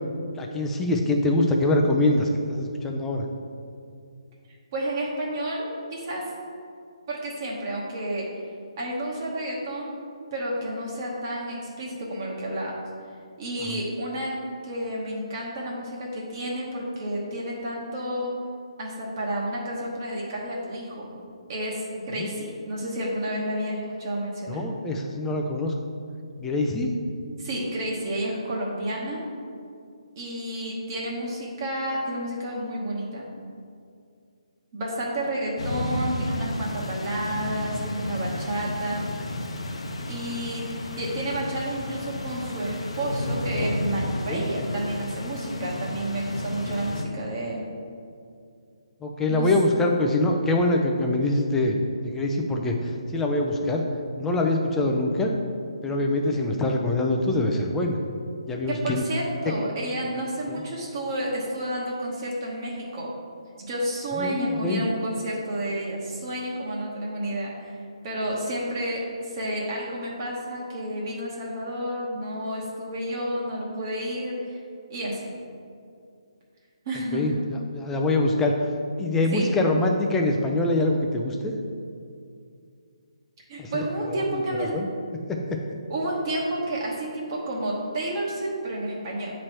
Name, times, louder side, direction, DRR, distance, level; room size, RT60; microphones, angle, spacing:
voice 1, 0.4-3.3 22.2-22.3 24.5-25.7 26.4-26.9 44.3-44.5 49.0-51.7 52.0-53.8 54.2-55.3 55.8-58.0 58.5-59.0 60.5-60.6 64.1-64.8 77.1-78.5 79.0-81.5 83.6-83.8 84.5-84.9 85.3-85.6, left 2 dB, 10° left, 1 dB, 0.5 m, -24 dB
voice 2, 4.7-5.6 5.9-6.2 7.1-8.2 8.8-10.0 10.3-12.7 13.4-14.3 14.6-18.3 18.8-21.1 21.5-24.6 27.4-29.2 30.2-33.3 34.7-39.0 40.1-40.6 41.0-47.6 49.3-49.5 58.7-63.2 63.6-67.8 68.0-74.6 74.9-75.3 76.8-77.2 79.3-79.5 83.5-84.7 85.9-89.3, right 1 dB, 40° right, -4 dB, 1.1 m, -30 dB
sound 1, 35.6-47.0, left 1 dB, 70° left, 0.7 m, -32 dB
8.5 x 3.1 x 4.4 m, 2.4 s
figure-of-eight pair, 145°, 3 cm